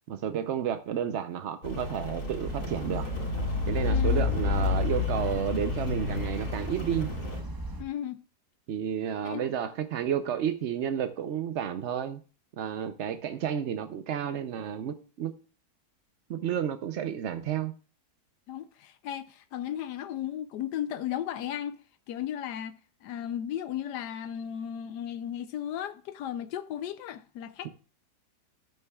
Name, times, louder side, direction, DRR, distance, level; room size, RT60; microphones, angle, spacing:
voice 1, 0.1-3.1 3.7-7.1 8.7-12.2 12.6-15.3 16.3-17.7, right 9 dB, 60° right, 0.8 m, -31 dB
Rain, 1.6-7.4, left 4 dB, 65° left, 3.7 m, -30 dB
sound 1, 2.4-7.8, right 2 dB, 20° right, 0.7 m, -37 dB
voice 2, 3.8-4.3 7.8-8.2 9.2-9.5 18.5-27.7, left 10 dB, 85° left, 1.2 m, -35 dB
13.5 x 9.9 x 2.3 m
omnidirectional pair, 1.7 m